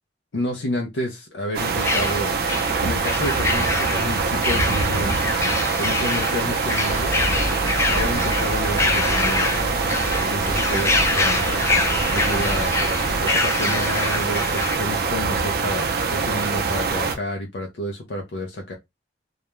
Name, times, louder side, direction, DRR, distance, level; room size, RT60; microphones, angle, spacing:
voice 1, 0.3-2.4 2.8-5.2 5.8-7.2 7.9-9.8 10.1-11.6 12.1-12.8 13.2-18.7, left 1 dB, 75° left, 0.5 m, -30 dB
sound 1, 1.5-17.1, right 4 dB, 60° right, 0.5 m, -24 dB
sound 2, 1.8-14.8, left 3 dB, 15° left, 0.3 m, -26 dB
sound 3, 6.9-13.2, equal, 45° left, 1.1 m, -31 dB
2.3 x 2.1 x 2.9 m
head